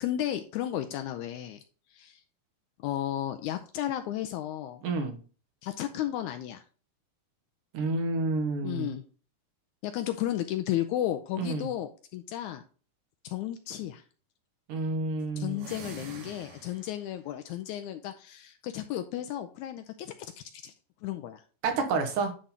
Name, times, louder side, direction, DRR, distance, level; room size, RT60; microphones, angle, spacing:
voice 1, 0.0-1.6 1.9-2.2 2.8-4.8 5.6-6.6 8.6-9.0 9.8-12.6 13.2-14.0 15.4-20.1 20.6-20.7 21.0-21.4, left 12 dB, 80° left, 7 dB, 1.8 m, -33 dB
voice 2, 4.8-5.2 7.7-8.9 11.4-11.7 14.7-15.6 21.6-22.3, right 3 dB, 75° right, 4 dB, 2.8 m, -29 dB
sound 1, 15.5-17.1, right 5 dB, 60° right, 2.7 m, -45 dB
10.0 x 3.8 x 4.2 m, 0.38 s
omnidirectional pair, 3.8 m